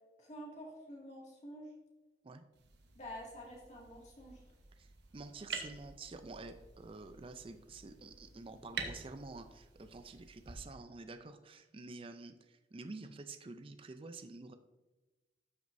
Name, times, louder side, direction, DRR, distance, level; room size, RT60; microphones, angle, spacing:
voice 1, 0.2-1.7 2.9-4.4, equal, 40° left, -3 dB, 2.1 m, -48 dB
sound 1, 2.5-10.5, right 5 dB, 70° right, 1.0 m, -49 dB
voice 2, 4.8-14.6, right 3 dB, 30° right, 9 dB, 0.4 m, -49 dB
12.5 x 6.2 x 2.6 m, 1.1 s
head